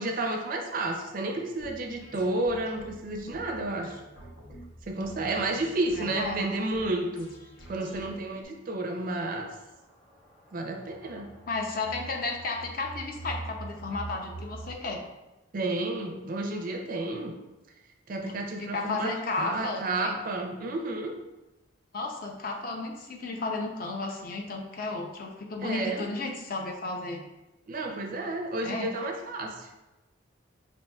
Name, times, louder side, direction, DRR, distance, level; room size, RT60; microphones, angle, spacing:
voice 1, 0.0-4.0 4.9-7.3 7.7-9.5 10.5-11.3 15.5-17.3 18.1-21.2 25.6-26.0 27.7-29.7, right 2 dB, 45° right, 3 dB, 0.4 m, -31 dB
sound 1, 1.6-8.4, right 1 dB, 75° left, 0.8 m, -49 dB
voice 2, 6.0-6.5 11.5-15.0 18.6-20.2 21.9-27.2 28.6-28.9, left 3 dB, 45° left, 2 dB, 0.5 m, -33 dB
sound 2, 7.6-7.7 8.6-14.7, right 2 dB, 15° left, 0.9 m, -44 dB
5.4 x 2.6 x 2.2 m, 1.0 s
head